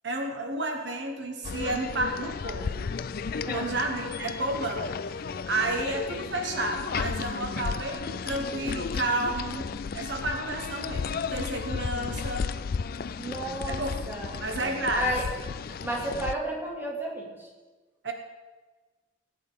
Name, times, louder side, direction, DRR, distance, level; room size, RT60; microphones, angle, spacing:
voice 1, 0.0-2.9 3.4-5.2 5.5-9.7 9.9-12.5 13.7-13.9 14.4-15.1 18.0-18.1, right 2 dB, 65° right, 3 dB, 1.2 m, -31 dB
sound 1, 1.4-16.3, left 5 dB, 50° left, 0.3 m, -33 dB
voice 2, 13.2-14.5 15.0-15.3 15.8-17.5, right 1 dB, 10° right, -4 dB, 2.3 m, -32 dB
18.0 x 8.7 x 3.6 m, 1.3 s
head